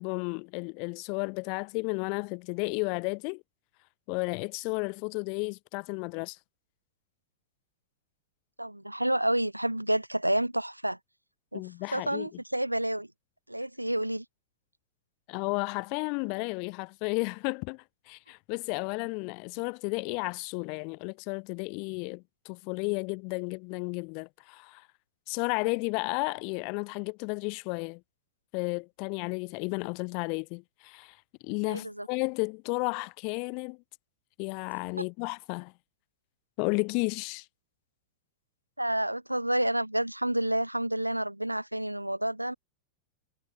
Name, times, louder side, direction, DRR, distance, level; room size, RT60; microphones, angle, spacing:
voice 1, 0.0-3.4 4.1-6.4 11.5-12.3 15.3-24.9 25.3-28.0 28.5-31.2 31.4-33.8 34.4-35.7 36.6-37.4, left 35 dB, 45° left, 0.8 m, -33 dB
voice 2, 8.6-11.0 11.5-11.6 11.9-13.1 13.5-14.2 31.7-32.1 38.8-42.5, right 1 dB, 85° right, 1.2 m, -29 dB
figure-of-eight pair, 90°, 0 cm